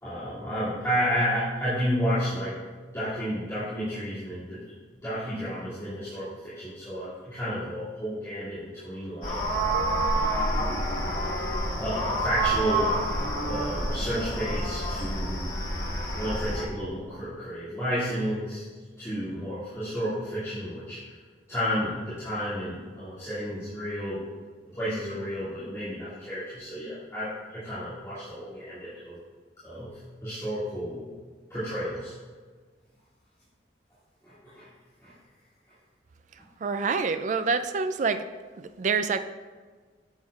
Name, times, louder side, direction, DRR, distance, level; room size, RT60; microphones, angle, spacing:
voice 1, 0.0-2.6 2.9-4.7 5.0-9.5 10.5-10.7 11.8-13.0 13.5-15.5 16.1-18.7 19.0-21.1 21.5-24.2 24.7-29.2 29.6-31.1 31.5-32.1 34.2-34.7 35.0-35.1, equal, 15° left, -15 dB, 2.4 m, -31 dB
sound 1, 9.2-16.6, right 1 dB, 50° left, 1.4 m, -28 dB
voice 2, 36.6-38.3 38.6-39.2, right 5 dB, 40° right, 10 dB, 0.3 m, -26 dB
9.4 x 7.7 x 2.4 m, 1.5 s
head